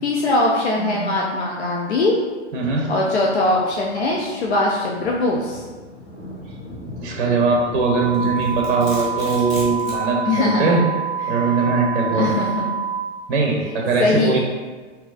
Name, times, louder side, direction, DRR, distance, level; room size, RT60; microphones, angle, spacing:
voice 1, 0.0-2.1 2.9-5.6 10.2-10.8 11.3-11.5 12.1-12.7 14.0-14.4, left 2 dB, 70° left, -2 dB, 0.5 m, -21 dB
voice 2, 0.8-1.1 2.5-2.9 7.0-10.8 11.3-12.3 13.3-14.4, right 3 dB, 50° right, 0 dB, 0.6 m, -21 dB
Thunder, 3.2-9.6, left 1 dB, 90° left, 1.1 m, -40 dB
sound 1, 7.8-13.0, right 6 dB, 10° right, 1.1 m, -27 dB
Domestic sounds home sounds, 8.1-10.1, left 1 dB, 20° left, 0.7 m, -35 dB
3.7 x 2.7 x 2.4 m, 1.4 s
figure-of-eight pair, 105°, 36 cm